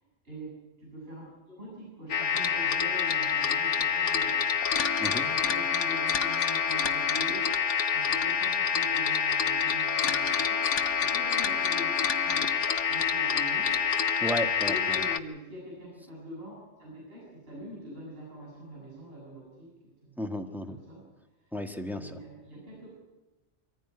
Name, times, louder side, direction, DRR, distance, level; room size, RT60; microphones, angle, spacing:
voice 1, 0.2-1.3 1.6-4.4 5.0-7.6 7.9-12.6 12.8-13.8 14.6-20.2 20.7-21.0 21.4-21.5 21.9-23.0, equal, 55° right, -5 dB, 7.6 m, -44 dB
sound 1, 2.1-15.2, left 7 dB, 90° left, 1.3 m, -27 dB
voice 2, 14.2-15.0 20.2-20.8 21.5-22.1, equal, ahead, 5 dB, 1.6 m, -33 dB
23.5 x 15.0 x 9.6 m, 1.1 s
omnidirectional pair, 1.2 m